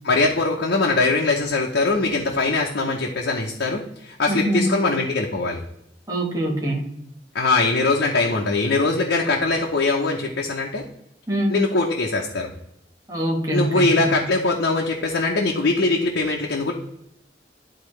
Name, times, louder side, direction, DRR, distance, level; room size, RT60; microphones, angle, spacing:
voice 1, 0.0-5.6 7.3-10.8 11.5-12.5 13.5-16.7, left 3 dB, 90° left, -1 dB, 0.8 m, -22 dB
voice 2, 4.3-4.7 6.1-7.0 11.3-11.6 13.1-14.1, right 1 dB, 20° right, -1 dB, 1.4 m, -24 dB
11.5 x 3.9 x 3.2 m, 0.81 s
head